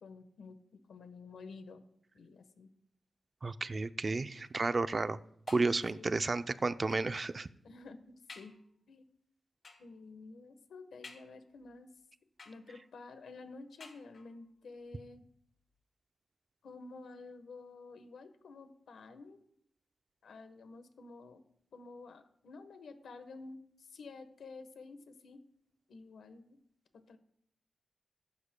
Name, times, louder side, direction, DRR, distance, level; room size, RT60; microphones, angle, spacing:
voice 1, 0.0-1.8 2.1-2.7 5.7-6.2 7.6-8.5 8.9-9.1 9.8-11.9 12.4-15.2 16.6-19.4 20.2-21.4 21.7-25.4 25.9-26.6 26.9-27.2, left 3 dB, 85° left, 9 dB, 1.2 m, -51 dB
voice 2, 3.4-4.3 4.5-5.2 5.5-7.5, right 3 dB, 40° right, 12 dB, 0.5 m, -32 dB
sound 1, 5.5-6.1 6.9-7.2 7.7-7.8 8.3-8.7 9.6-10.0 11.0-11.7 12.4-13.0 13.8-14.5 15.3-15.4 15.7-15.8, left 4 dB, 65° left, 3.9 m, -55 dB
14.5 x 12.0 x 2.2 m, 0.71 s
cardioid pair, 80°, 0 cm